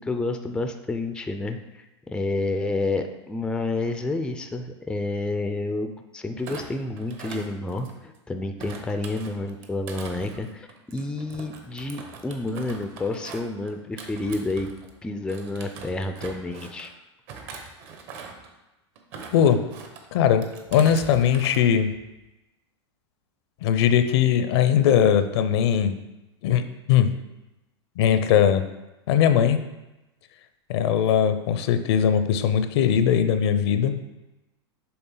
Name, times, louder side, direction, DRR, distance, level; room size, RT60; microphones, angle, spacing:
voice 1, 0.0-14.7 15.0-16.9, left 2 dB, 5° left, 7 dB, 0.4 m, -29 dB
Thump thud, 6.4-8.2 8.6-14.9 15.3-16.9 17.3-18.5 18.9-20.0 20.4-21.6 21.9-22.3, right 5 dB, 50° right, 1.1 m, -42 dB
voice 2, 19.3-19.6 20.1-21.9 23.6-26.0 26.4-27.1 28.0-28.7 29.1-29.7 30.7-34.0, left 9 dB, 65° left, 10 dB, 0.6 m, -20 dB
6.9 x 3.9 x 3.8 m, 1.0 s
hypercardioid pair, 120°, 15 cm